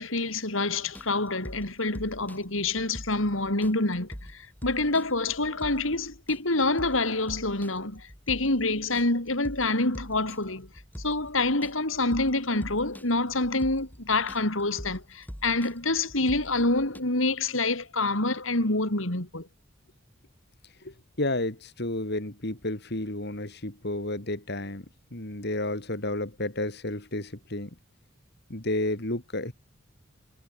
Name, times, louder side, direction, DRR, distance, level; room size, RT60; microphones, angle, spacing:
voice 1, 0.0-10.7 11.0-19.5, left 2 dB, 75° left, 4.7 m, -27 dB
sound 1, 0.8-17.0, equal, 10° left, 7.1 m, -44 dB
voice 2, 20.8-24.9 25.1-27.7 28.5-29.5, left 1 dB, 55° left, 3.7 m, -31 dB
head